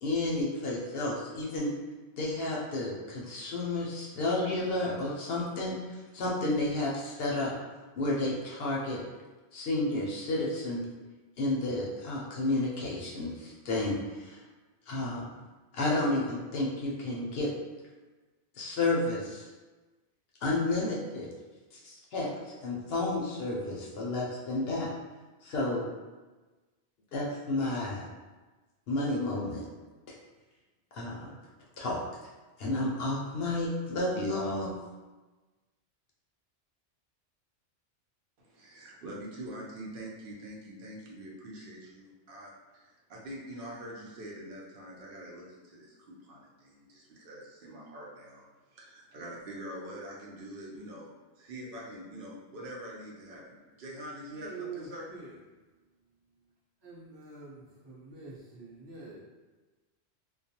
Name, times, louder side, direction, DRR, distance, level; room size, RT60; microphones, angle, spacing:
voice 1, 0.0-1.7 2.2-7.5 8.0-9.0 9.5-10.8 11.4-14.4 14.9-15.2 15.7-17.5 18.6-19.5 20.4-21.3 21.7-24.9 25.4-25.9 27.1-28.1 28.9-29.6 30.9-31.3 31.8-32.0 32.6-34.8, left 2 dB, 65° left, -4 dB, 0.7 m, -31 dB
voice 2, 38.4-48.5 48.7-51.1 51.4-55.1, right 1 dB, 60° right, -3 dB, 0.7 m, -44 dB
voice 3, 54.3-55.4 56.8-59.2, right 4 dB, 25° right, -9 dB, 0.7 m, -45 dB
2.3 x 2.1 x 2.7 m, 1.2 s
omnidirectional pair, 1.2 m